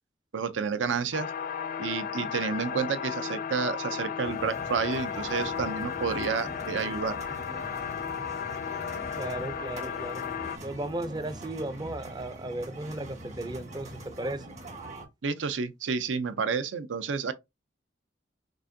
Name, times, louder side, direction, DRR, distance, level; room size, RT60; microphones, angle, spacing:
voice 1, 0.3-1.3 1.8-7.2 15.2-17.3, right 5 dB, 75° right, 0.5 m, -30 dB
sound 1, 1.1-10.6, left 7 dB, 50° left, 0.3 m, -34 dB
sound 2, 4.2-15.1, right 1 dB, 40° right, 1.4 m, -43 dB
voice 2, 9.2-10.2 10.6-14.5, right 1 dB, 25° right, 0.5 m, -35 dB
6.1 x 2.5 x 2.6 m
head